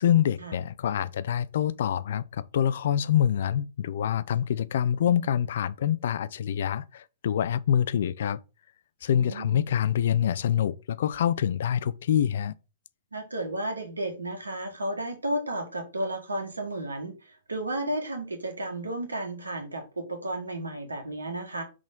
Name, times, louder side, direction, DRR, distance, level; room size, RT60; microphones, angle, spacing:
voice 1, 0.0-8.4 9.0-12.5, left 9 dB, 60° left, 0.4 m, -26 dB
voice 2, 9.1-9.6 13.1-21.6, right 1 dB, 80° right, 1.7 m, -33 dB
5.9 x 4.2 x 3.8 m
figure-of-eight pair, 110°, 0 cm